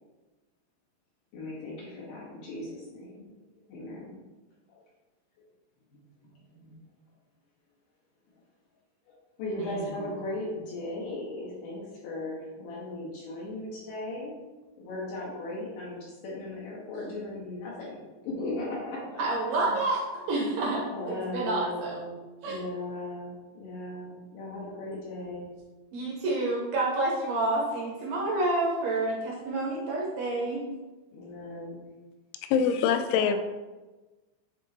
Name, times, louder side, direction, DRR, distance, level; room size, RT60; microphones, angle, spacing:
voice 1, 1.3-3.3 3.7-4.2 4.7-4.8 5.9-6.8 9.4-14.3 14.8-19.8 20.8-22.2 22.4-25.5 31.1-31.8 33.1-33.4, left 1 dB, 65° left, -6 dB, 2.3 m, -37 dB
voice 2, 9.6-9.9 19.2-21.9 22.4-22.6 25.9-30.7, right 2 dB, 75° right, -3 dB, 2.4 m, -29 dB
voice 3, 32.5-33.4, left 7 dB, 90° left, 7 dB, 3.0 m, -23 dB
10.5 x 3.6 x 2.8 m, 1.2 s
omnidirectional pair, 5.3 m